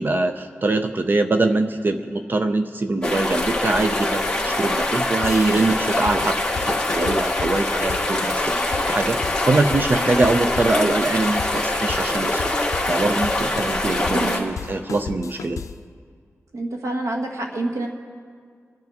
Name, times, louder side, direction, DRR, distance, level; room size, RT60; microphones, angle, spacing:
voice 1, 0.0-6.4 6.7-9.2 9.4-12.5 12.9-15.6, right 2 dB, 40° right, 7 dB, 0.5 m, -23 dB
sound 1, 3.0-14.4, left 2 dB, 15° left, 2.0 m, -24 dB
sound 2, 5.2-15.9, left 6 dB, 85° left, 0.4 m, -35 dB
voice 2, 14.0-14.4 16.5-17.9, right 2 dB, 85° right, 2 dB, 1.4 m, -27 dB
26.5 x 10.5 x 3.5 m, 2.1 s
wide cardioid pair, 130°, 5 cm